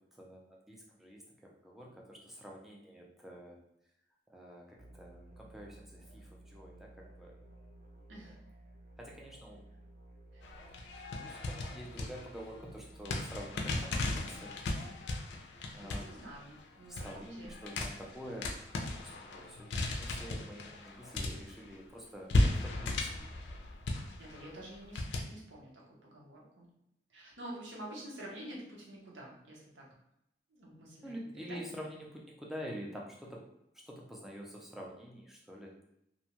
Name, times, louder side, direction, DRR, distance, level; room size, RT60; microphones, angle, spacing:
voice 1, 0.1-3.6 4.3-7.4 9.0-9.6 11.1-14.5 15.7-16.1 16.9-18.5 19.0-23.1 31.0-33.4 33.9-35.7, equal, ahead, -2 dB, 0.4 m, -47 dB
sound 1, 4.8-14.4, right 1 dB, 50° right, 0.6 m, -55 dB
sound 2, 10.4-12.7 13.1-21.8 22.3-25.2, left 2 dB, 75° left, 0.4 m, -36 dB
voice 2, 15.7-17.6 23.0-23.2 23.9-26.7 27.1-29.9 30.5-31.6, right 1 dB, 85° right, -3 dB, 0.9 m, -49 dB
2.6 x 2.2 x 2.9 m, 0.81 s
head